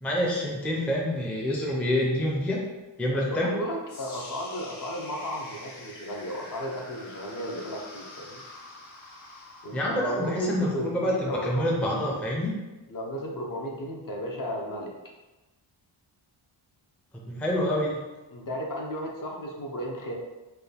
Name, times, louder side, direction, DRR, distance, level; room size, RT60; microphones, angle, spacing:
voice 1, 0.0-2.6 3.0-3.6 9.7-12.5 17.1-18.0, left 1 dB, 5° left, -3 dB, 0.4 m, -27 dB
voice 2, 3.1-8.4 9.6-12.2 12.9-14.9 18.3-20.1, equal, 45° left, -1 dB, 0.7 m, -34 dB
sound 1, 3.9-11.9, left 2 dB, 85° left, 1.3 m, -47 dB
4.6 x 2.3 x 3.3 m, 1.1 s
wide cardioid pair, 155°, 48 cm